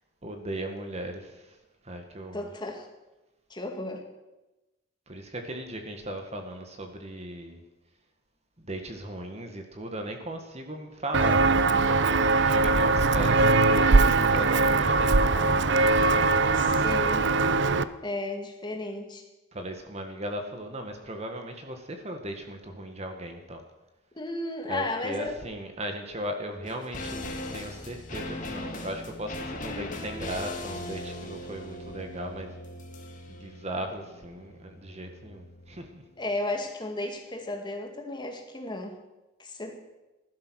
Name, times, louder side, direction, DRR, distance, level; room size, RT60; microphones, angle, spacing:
voice 1, 0.2-1.6 1.8-2.5 5.1-7.6 8.6-16.5 19.5-23.6 24.7-27.2 27.5-32.6 33.3-36.0, right 1 dB, 35° right, 5 dB, 1.7 m, -37 dB
voice 2, 2.3-2.9 3.5-4.0 16.6-17.2 18.0-19.2 24.2-25.3 36.2-39.0 39.4-39.8, left 2 dB, 20° left, 3 dB, 2.0 m, -34 dB
Walk footsteps, 11.1-17.8, right 3 dB, 60° right, 0.6 m, -21 dB
sound 1, 26.6-36.0 36.3-36.4, left 2 dB, 40° left, 1.9 m, -39 dB
15.5 x 12.0 x 6.4 m, 1.1 s
head